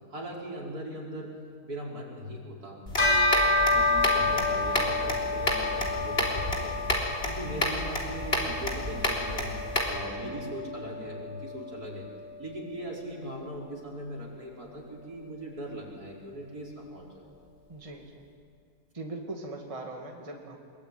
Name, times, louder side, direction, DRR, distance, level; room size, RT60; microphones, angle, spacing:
voice 1, 0.1-1.3 1.6-2.8 3.7-12.1 12.4-17.3, right 1 dB, 70° right, -3 dB, 5.7 m, -40 dB
sound 1, 2.9-10.0, left 1 dB, 35° left, 4.1 m, -31 dB
Bell, 3.0-12.7, left 2 dB, 65° left, 5.7 m, -30 dB
voice 2, 17.7-18.2 18.9-20.6, right 2 dB, 20° right, 1 dB, 2.2 m, -40 dB
24.0 x 23.0 x 9.4 m, 2.2 s
omnidirectional pair, 1.7 m